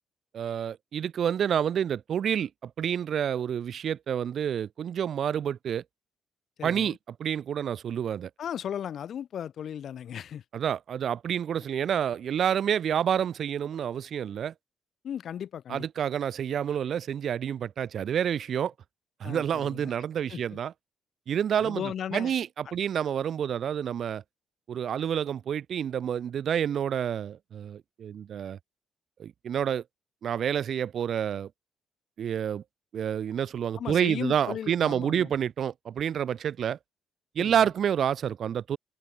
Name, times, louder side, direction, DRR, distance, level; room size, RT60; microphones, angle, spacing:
voice 1, 0.3-5.8 6.6-8.3 10.5-14.5 15.7-18.7 19.2-20.7 21.3-21.8 22.1-24.2 24.7-28.6 29.2-29.8 30.2-31.5 32.2-32.6 32.9-36.8 37.4-38.8, right 9 dB, 60° right, 0.4 m, -28 dB
voice 2, 6.6-7.0 8.4-10.4 15.0-15.9 19.2-19.9 20.3-20.4 21.6-22.3 33.8-35.3 37.4-37.7, left 9 dB, 60° left, 3.9 m, -36 dB
cardioid pair, 75°, 0 cm